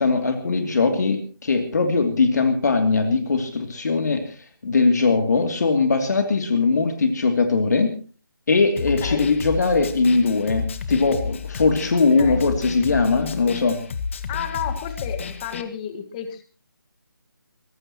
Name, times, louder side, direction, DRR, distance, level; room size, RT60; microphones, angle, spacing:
voice 1, 0.0-4.4 4.6-7.9 8.5-13.8, left 4 dB, 50° left, 5 dB, 2.8 m, -20 dB
Snare drum, 8.8-15.6, left 5 dB, 35° left, 1.7 m, -31 dB
voice 2, 11.9-12.5 14.3-16.4, left 9 dB, 20° left, 8 dB, 1.8 m, -32 dB
24.0 x 19.0 x 3.0 m, 0.38 s
figure-of-eight pair, 160°, 12 cm